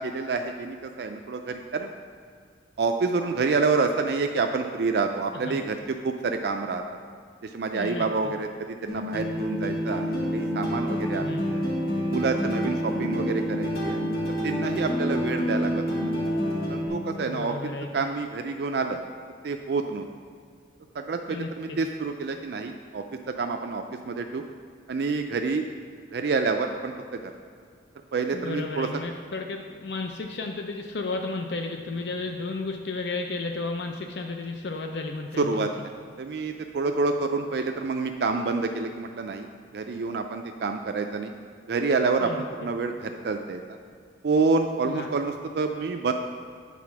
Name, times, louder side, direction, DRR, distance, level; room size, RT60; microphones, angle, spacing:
voice 1, 0.0-1.9 2.8-5.8 6.0-6.8 7.5-11.6 12.1-14.1 14.4-15.8 16.7-17.5 17.9-19.0 19.4-20.1 21.0-23.0 23.4-24.4 24.9-25.6 26.1-27.3 28.1-28.9 35.4-35.7 36.2-39.5 39.7-41.3 41.7-43.6 44.2-46.1, right 4 dB, 65° right, 5 dB, 0.4 m, -28 dB
voice 2, 7.7-8.3 11.2-11.5 17.2-18.0 21.3-21.8 28.3-35.7 42.2-42.4 44.8-45.1, left 3 dB, 70° left, 4 dB, 0.5 m, -33 dB
sound 1, 8.9-16.9, equal, 55° left, 1.5 m, -28 dB
8.4 x 4.1 x 5.9 m, 2.2 s
head